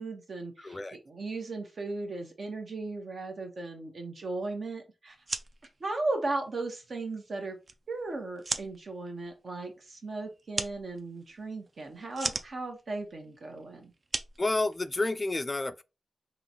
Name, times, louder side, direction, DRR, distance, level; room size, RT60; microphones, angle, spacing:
voice 1, 0.0-0.8 1.1-5.1 5.8-7.6 7.9-13.9, right 2 dB, 55° right, 1.1 m, -36 dB
voice 2, 0.6-1.0 14.4-15.8, left 2 dB, 25° left, 0.3 m, -30 dB
sound 1, 5.1-15.3, right 3 dB, 40° right, 0.4 m, -40 dB
3.9 x 3.0 x 2.9 m
wide cardioid pair, 90°, 0 cm